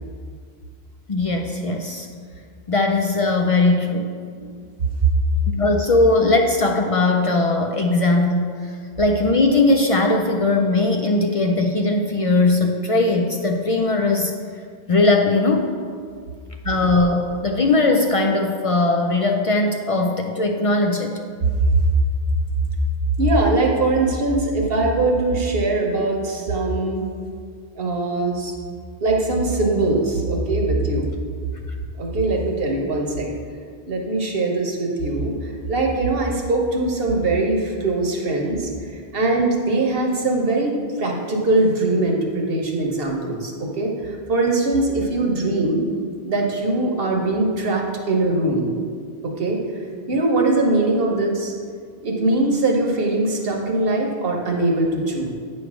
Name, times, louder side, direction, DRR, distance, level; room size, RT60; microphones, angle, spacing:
voice 1, 1.1-2.1 2.7-4.1 5.5-8.7 9.0-14.3 14.9-15.7 16.6-21.1, left 2 dB, 50° left, 2 dB, 0.4 m, -19 dB
voice 2, 23.2-27.0 27.7-28.5 29.0-31.1 32.0-33.3 33.9-45.9 46.3-48.7 49.2-49.6 50.1-51.5 52.0-55.3, right 2 dB, 65° right, 0 dB, 1.2 m, -21 dB
9.0 x 3.2 x 6.1 m, 2.1 s
omnidirectional pair, 1.0 m